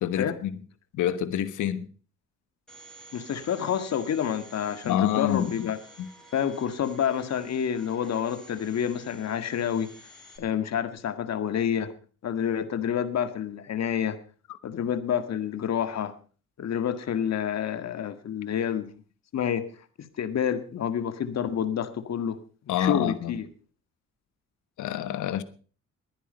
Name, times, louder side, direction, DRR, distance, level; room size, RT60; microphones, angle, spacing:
voice 1, 0.0-0.5 0.9-1.8 4.8-5.7 6.0-6.1 22.7-23.4 24.8-25.4, left 11 dB, 80° left, 1.3 m, -27 dB
Domestic sounds home sounds, 2.7-10.4, right 2 dB, ahead, 6.2 m, -51 dB
voice 2, 3.1-5.8 6.3-9.9 10.4-11.9 12.2-14.2 14.6-16.1 16.6-18.9 19.3-19.7 20.0-22.4 22.8-23.5, left 8 dB, 60° left, 1.9 m, -28 dB
20.5 x 10.5 x 5.3 m
cardioid pair, 90°, 30 cm